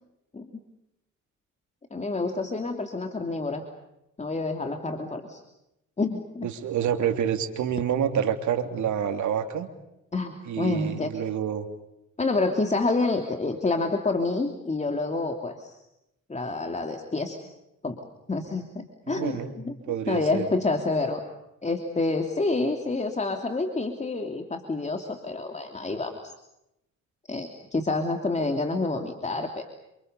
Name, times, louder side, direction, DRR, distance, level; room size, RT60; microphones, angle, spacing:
voice 1, 1.9-3.6 4.2-5.4 6.0-6.5 10.1-11.1 12.2-15.8 16.3-17.4 17.8-18.0 18.3-21.2 21.6-26.1 27.3-29.6, left 3 dB, 25° left, 4 dB, 3.0 m, -28 dB
voice 2, 6.4-9.7 10.5-11.7 19.1-19.5 19.9-20.5, right 9 dB, 75° right, 7 dB, 3.3 m, -27 dB
28.5 x 27.5 x 6.9 m, 0.86 s
cardioid pair, 90°, 30 cm